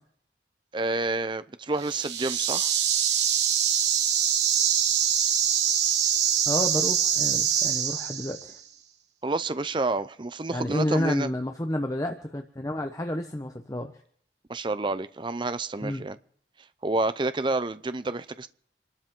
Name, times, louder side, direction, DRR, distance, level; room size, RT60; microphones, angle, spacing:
voice 1, 0.7-2.7 9.2-11.3 14.5-16.2 16.8-18.5, right 2 dB, 25° right, 0.6 m, -29 dB
sound 1, 1.8-8.5, right 9 dB, 75° right, 1.5 m, -24 dB
voice 2, 6.5-8.6 10.5-13.9 15.8-16.1, left 1 dB, 20° left, 1.0 m, -30 dB
27.0 x 12.5 x 3.7 m
head